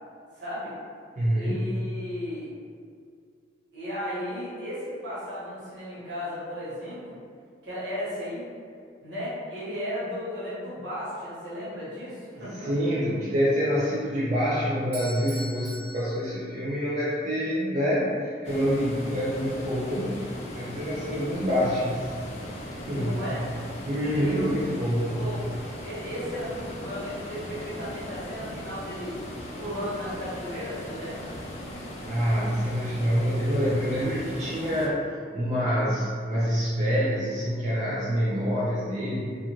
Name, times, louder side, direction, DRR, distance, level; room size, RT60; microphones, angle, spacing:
voice 1, 0.3-0.7 1.4-2.5 3.7-7.2 7.6-8.4 9.0-12.7 22.9-23.4 24.2-24.4 25.0-25.4 25.8-29.1 29.6-31.3, equal, 75° right, -10 dB, 1.2 m, -35 dB
voice 2, 1.2-1.7 12.5-20.3 20.5-22.1 22.9-23.2 23.8-25.2 32.0-39.2, equal, 35° right, -8 dB, 0.4 m, -26 dB
Bell / Doorbell, 14.9-17.0, equal, 55° right, 0.7 m, -42 dB
sound 1, 18.4-34.9, equal, 35° left, 0.3 m, -39 dB
2.4 x 2.4 x 2.8 m, 2.2 s
head